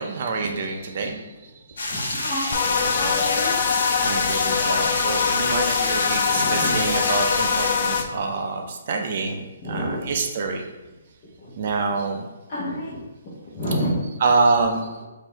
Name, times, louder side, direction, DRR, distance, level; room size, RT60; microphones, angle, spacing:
voice 1, 0.0-1.5 1.9-2.0 4.0-10.6 11.6-12.2 14.2-14.9, right 4 dB, 45° right, 3 dB, 0.5 m, -26 dB
sound 1, 1.8-7.7, left 2 dB, 80° left, 1.3 m, -28 dB
voice 2, 1.9-3.5 3.9-4.2 4.5-4.9 6.3-6.7 9.6-10.1 11.4-11.5 12.5-14.0, equal, 25° left, -10 dB, 1.0 m, -30 dB
sound 2, 2.5-8.0, left 6 dB, 40° left, 0.4 m, -23 dB
4.1 x 2.6 x 4.4 m, 1.1 s
hypercardioid pair, 165°, 0 cm